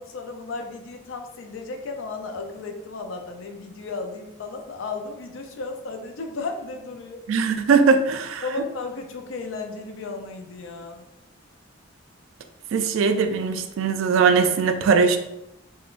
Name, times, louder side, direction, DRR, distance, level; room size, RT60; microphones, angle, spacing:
voice 1, 0.0-7.2 8.4-11.1, left 3 dB, 70° left, 4 dB, 0.4 m, -34 dB
voice 2, 7.3-8.4 12.7-15.2, right 5 dB, 75° right, 8 dB, 0.3 m, -20 dB
3.6 x 2.1 x 2.4 m, 0.87 s
head